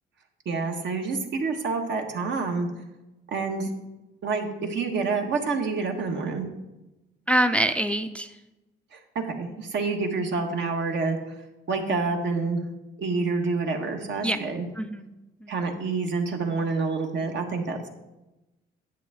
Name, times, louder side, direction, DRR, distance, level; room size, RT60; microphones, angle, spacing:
voice 1, 0.4-2.7 3.3-3.7 4.2-6.5 8.9-11.2 11.7-12.6 13.0-14.6 15.5-17.9, right 4 dB, 65° right, 3 dB, 1.4 m, -28 dB
voice 2, 7.3-8.3 14.2-14.4 14.8-15.1 15.4-15.5, right 1 dB, 5° left, 8 dB, 0.4 m, -24 dB
10.0 x 7.7 x 3.6 m, 1.0 s
cardioid pair, 90°, 20 cm